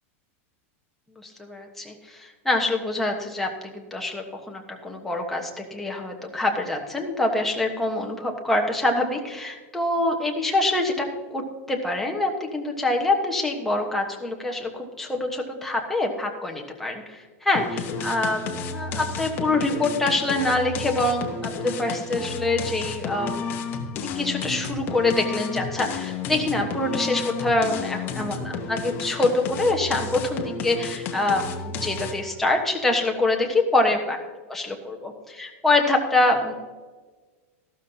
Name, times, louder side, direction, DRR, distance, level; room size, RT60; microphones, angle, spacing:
voice 1, 1.2-11.1 11.3-11.4 11.7-23.5 24.0-34.2 34.5-36.5, left 2 dB, 5° left, 1 dB, 1.2 m, -25 dB
sound 1, 17.5-32.3, left 4 dB, 30° left, 1.2 m, -32 dB
14.0 x 12.5 x 2.8 m, 1.3 s
supercardioid pair, 165°, 8 cm